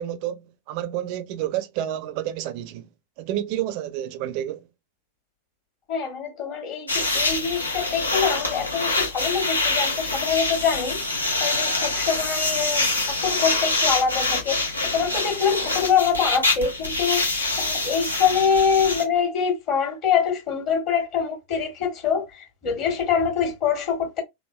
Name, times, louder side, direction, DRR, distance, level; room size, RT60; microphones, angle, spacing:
voice 1, 0.0-2.9 3.2-4.6, right 12 dB, 45° right, 0.4 m, -29 dB
voice 2, 5.9-24.2, left 7 dB, 40° left, 1.3 m, -25 dB
sound 1, 6.9-19.0, left 2 dB, 80° left, 0.8 m, -25 dB
3.5 x 2.4 x 2.2 m
figure-of-eight pair, 90°, 0 cm